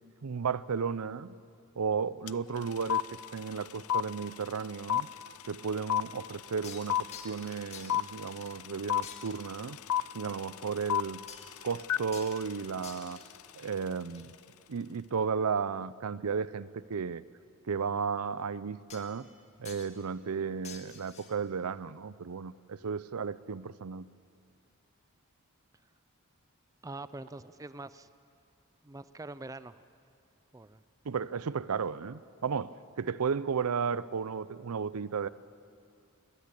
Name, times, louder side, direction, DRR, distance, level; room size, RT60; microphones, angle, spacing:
voice 1, 0.2-1.4 1.8-3.0 3.3-5.1 5.5-9.8 10.1-11.2 11.6-13.2 13.6-14.3 14.7-17.2 17.7-19.3 19.6-24.1 31.0-35.3, right 6 dB, 90° right, 17 dB, 0.5 m, -34 dB
sound 1, 2.3-2.4 2.6-13.7, left 10 dB, 80° left, 0.5 m, -32 dB
sound 2, 6.6-7.5 7.7-8.7 9.0-9.6 11.3-11.6 12.1-12.4 12.8-14.3 18.9-19.4 19.6-20.0 20.6-21.4, left 6 dB, 30° left, 1.8 m, -50 dB
voice 2, 26.8-28.1 28.8-29.8 30.5-30.8, right 2 dB, 15° right, 14 dB, 0.5 m, -44 dB
22.5 x 19.0 x 8.3 m, 2.4 s
head